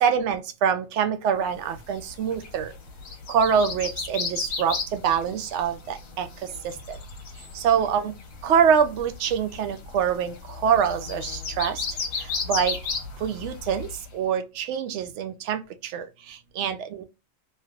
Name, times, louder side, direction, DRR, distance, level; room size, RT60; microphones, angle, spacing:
voice 1, 0.0-2.7 3.3-6.3 7.6-8.1 8.4-10.3 10.6-11.8 12.5-12.8 13.2-13.9 14.1-15.6 15.9-16.0 16.6-17.0, right 7 dB, 65° right, 0.8 m, -24 dB
sound 1, 1.6-14.1, left 4 dB, 70° left, 1.1 m, -35 dB
3.1 x 3.0 x 2.3 m
omnidirectional pair, 1.4 m